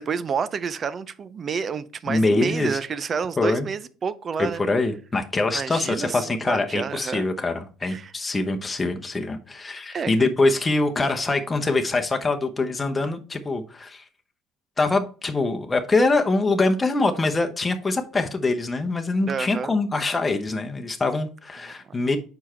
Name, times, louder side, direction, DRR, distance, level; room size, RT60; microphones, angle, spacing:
voice 1, 0.0-4.6 5.5-7.3 7.8-8.1 9.9-10.1 19.2-19.8 21.7-21.8, right 6 dB, 40° right, 0.5 m, -29 dB
voice 2, 2.1-2.8 3.4-3.7 4.6-14.0 14.8-22.2, left 3 dB, 20° left, 0.9 m, -24 dB
5.7 x 4.6 x 4.4 m
supercardioid pair, 80°, 0 cm